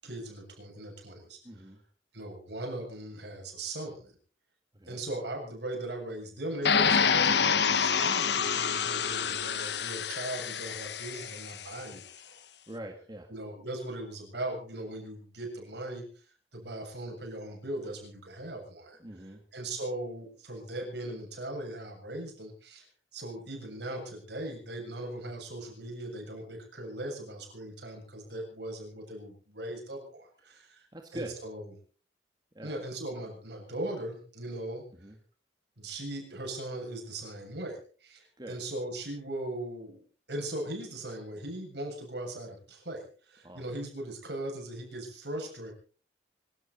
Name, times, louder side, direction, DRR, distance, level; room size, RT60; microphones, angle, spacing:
voice 1, 0.0-1.4 2.1-4.1 4.9-12.3 13.3-16.0 16.5-19.0 19.5-22.9 23.1-30.9 31.1-31.6 32.6-34.8 35.8-45.7, right 1 dB, 65° right, 1 dB, 7.4 m, -39 dB
voice 2, 1.4-1.8 4.7-5.0 9.2-9.4 12.7-13.3 19.0-19.4 30.4-30.5 30.9-31.4 32.5-32.8 34.9-35.2 38.4-38.5 43.4-43.6, right 1 dB, 25° right, 3 dB, 1.8 m, -43 dB
sound 1, 6.6-11.6, left 6 dB, 65° left, 1.1 m, -27 dB
26.0 x 13.0 x 4.2 m, 0.41 s
head